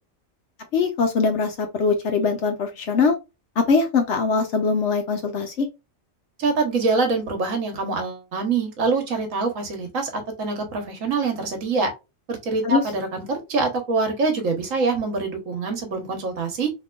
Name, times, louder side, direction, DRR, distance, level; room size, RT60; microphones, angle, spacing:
voice 1, 0.7-3.2 3.6-5.7 12.6-12.8, left 4 dB, 65° left, 0.9 m, -22 dB
voice 2, 6.4-11.9 12.3-16.7, right 4 dB, 70° right, 1.4 m, -25 dB
3.5 x 2.9 x 2.3 m
omnidirectional pair, 1.4 m